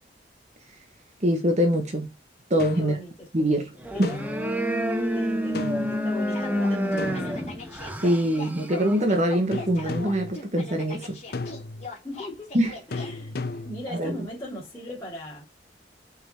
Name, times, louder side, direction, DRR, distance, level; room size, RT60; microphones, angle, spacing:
voice 1, 1.2-2.1 2.5-3.0 3.3-3.7 4.0-4.1 8.0-11.2 12.5-12.7 14.0-14.1, equal, 40° right, 1.3 m, -23 dB
sound 1, 2.6-3.0 4.0-4.5 5.5-6.0 7.0-7.8 9.5-10.3 11.3-11.9 12.9-13.9, left 3 dB, 60° left, 0.7 m, -34 dB
voice 2, 2.7-3.3 3.9-4.1 5.1-7.4 12.0-12.5 12.9-13.3 13.6-15.4, left 1 dB, 15° left, 2.9 m, -39 dB
sound 2, 3.8-9.0, equal, 10° right, 0.9 m, -28 dB
sound 3, 6.3-13.1, left 3 dB, 40° left, 2.9 m, -40 dB
5.8 x 4.1 x 4.4 m
head